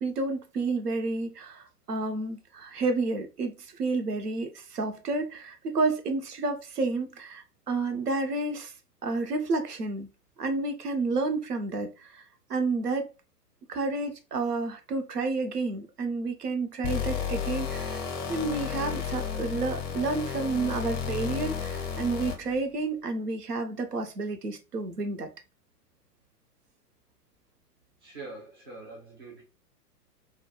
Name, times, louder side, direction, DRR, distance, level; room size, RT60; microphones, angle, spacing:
voice 1, 0.0-8.7 9.0-10.1 10.4-12.2 12.5-13.1 13.7-18.0 18.3-25.3, right 3 dB, 75° right, 0.7 m, -30 dB
sound 1, 16.8-22.6, left 7 dB, 30° left, 0.6 m, -32 dB
voice 2, 28.0-29.4, right 3 dB, 20° right, 0.3 m, -44 dB
2.2 x 2.1 x 2.8 m
figure-of-eight pair, 110°, 48 cm